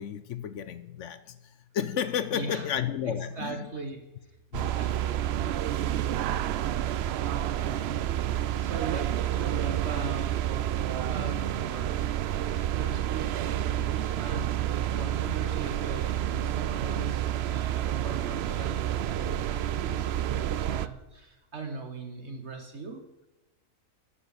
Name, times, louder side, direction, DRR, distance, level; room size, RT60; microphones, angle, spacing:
voice 1, 0.0-3.7 4.5-4.8, left 9 dB, 65° left, 0.8 m, -32 dB
voice 2, 2.3-2.7 3.1-4.1 4.6-5.2 8.6-12.1 12.7-23.0, right 3 dB, 50° right, 1.3 m, -40 dB
sound 1, 4.5-20.9, right 11 dB, 70° right, 0.6 m, -29 dB
11.0 x 7.7 x 8.0 m
omnidirectional pair, 1.6 m